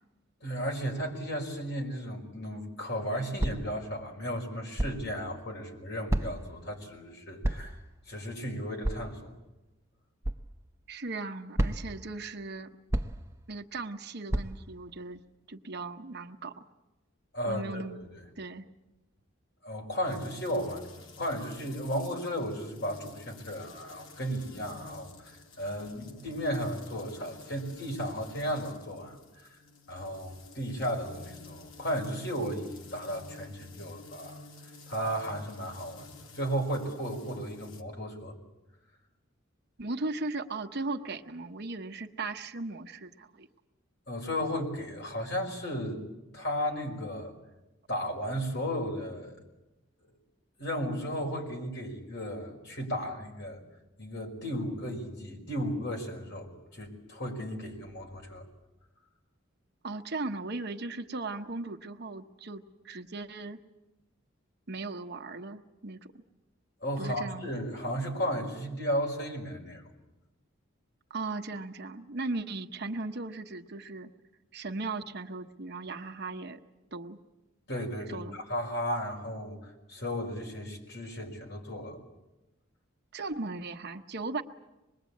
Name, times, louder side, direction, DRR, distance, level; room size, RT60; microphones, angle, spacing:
voice 1, 0.4-7.8 8.1-9.3 17.3-17.8 18.1-18.2 19.6-29.2 29.9-34.4 34.9-38.3 44.1-46.1 46.3-47.3 47.9-49.4 50.6-53.6 54.0-58.5 66.8-69.9 77.7-82.0, equal, 55° left, 2 dB, 5.4 m, -34 dB
sound 1, 3.4-3.8 4.8-5.1 6.1-6.5 7.4-7.8 8.8-9.2 10.2-10.4 11.6-12.0 12.9-13.3 14.3-14.7, right 1 dB, 15° right, 0.8 m, -30 dB
voice 2, 10.9-12.7 13.5-15.2 15.5-16.6 17.4-18.0 18.4-18.7 39.8-43.5 59.8-63.6 64.7-66.1 67.0-67.5 71.1-74.1 74.5-76.6 76.9-77.2 78.1-78.4 83.1-84.4, right 3 dB, 55° right, 6 dB, 1.1 m, -37 dB
sound 2, 20.0-37.8, left 4 dB, 85° left, 2.2 m, -51 dB
25.5 x 21.5 x 8.5 m, 1.0 s
head